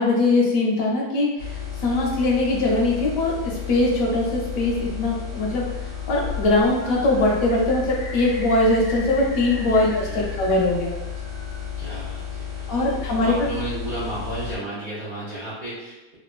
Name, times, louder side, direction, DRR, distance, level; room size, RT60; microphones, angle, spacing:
voice 1, 0.0-10.9 12.7-13.3, left 2 dB, 70° left, -2 dB, 0.9 m, -21 dB
sound 1, 1.4-14.6, left 8 dB, 60° right, 1.2 m, -33 dB
Bird, 6.0-6.5 6.8-10.5 10.8-11.6, left 2 dB, 50° left, 0.5 m, -41 dB
voice 2, 9.6-10.3 11.8-16.1, right 2 dB, 80° right, -8 dB, 0.4 m, -34 dB
3.0 x 2.1 x 2.4 m, 1.1 s
omnidirectional pair, 1.7 m